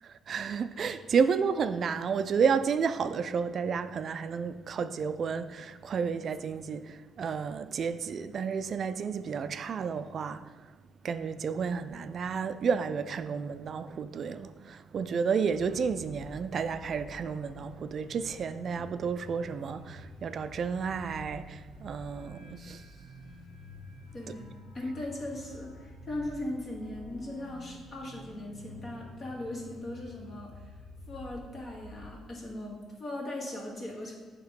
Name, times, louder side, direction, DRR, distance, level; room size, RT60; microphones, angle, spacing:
voice 1, 0.0-10.8 11.0-22.9, right 6 dB, 55° right, 0.3 m, -31 dB
sound 1, 15.4-32.1, left 2 dB, 85° left, 1.5 m, -49 dB
voice 2, 24.1-30.7 31.1-34.1, left 1 dB, 40° left, 2.0 m, -39 dB
7.9 x 3.0 x 5.1 m
cardioid pair, 90°, 0 cm